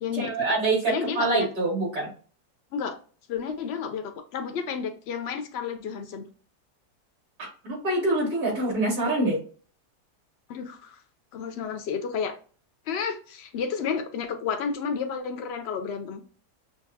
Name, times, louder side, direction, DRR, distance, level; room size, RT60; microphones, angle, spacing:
voice 1, 0.1-2.1 7.4-9.4, right 2 dB, 65° right, -4 dB, 2.9 m, -25 dB
voice 2, 0.9-1.5 2.7-3.0 3.3-6.3 10.5-11.0 11.3-12.4 12.9-16.2, left 6 dB, 90° left, 5 dB, 0.5 m, -31 dB
6.2 x 2.3 x 2.6 m, 0.40 s
omnidirectional pair, 1.8 m